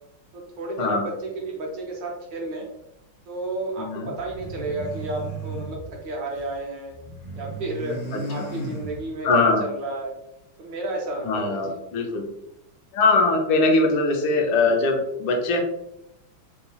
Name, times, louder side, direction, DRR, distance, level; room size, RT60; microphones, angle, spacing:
voice 1, 0.3-2.7 3.3-6.9 7.3-8.0 8.3-10.1 10.6-11.8, right 2 dB, 70° right, -1 dB, 1.2 m, -32 dB
voice 2, 3.8-4.1 8.4-8.5 9.2-9.6 11.2-12.2 12.9-15.6, left 3 dB, 75° left, 2 dB, 1.5 m, -21 dB
sound 1, 4.1-6.6 6.9-9.4, right 2 dB, 60° left, 1.3 m, -35 dB
4.2 x 2.7 x 2.3 m, 0.81 s
omnidirectional pair, 2.3 m